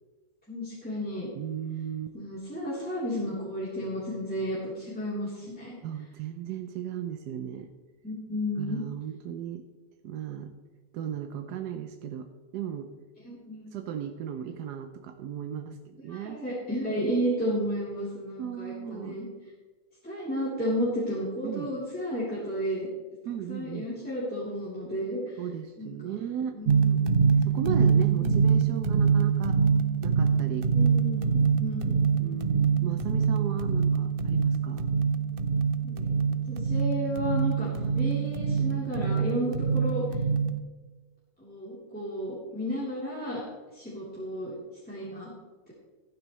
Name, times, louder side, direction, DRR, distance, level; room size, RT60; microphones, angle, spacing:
voice 1, 0.5-1.3 2.1-5.7 8.0-8.8 13.2-13.7 16.1-19.3 20.0-22.9 23.5-25.4 25.8-26.2 26.5-27.0 28.2-28.4 30.7-32.4 35.8-36.1 36.5-40.0 41.4-43.4 43.7-44.5 44.8-45.3, equal, 5° left, -10 dB, 3.3 m, -32 dB
voice 2, 1.3-2.1 5.8-7.7 8.6-9.7 10.0-10.5 10.9-12.3 12.5-12.9 13.7-16.4 18.4-19.2 21.4-21.8 23.3-23.9 25.4-26.6 27.4-29.6 30.0-30.7 32.2-34.9, right 9 dB, 85° right, 7 dB, 1.3 m, -36 dB
sound 1, 26.7-40.6, right 6 dB, 65° right, 0.5 m, -25 dB
15.0 x 12.0 x 3.2 m, 1.3 s
omnidirectional pair, 1.7 m